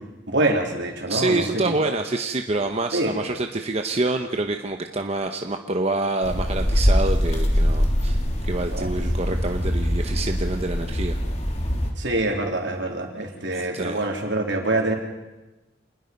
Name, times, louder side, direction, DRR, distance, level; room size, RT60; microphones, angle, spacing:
voice 1, 0.3-1.8 2.9-3.1 8.7-8.9 12.0-14.9, right 2 dB, 70° right, 2 dB, 3.7 m, -25 dB
voice 2, 1.1-11.2 13.5-14.0, right 2 dB, 35° right, 5 dB, 1.0 m, -27 dB
sound 1, 6.2-11.9, equal, 35° left, 3.0 m, -23 dB
27.5 x 20.0 x 5.4 m, 1.1 s
head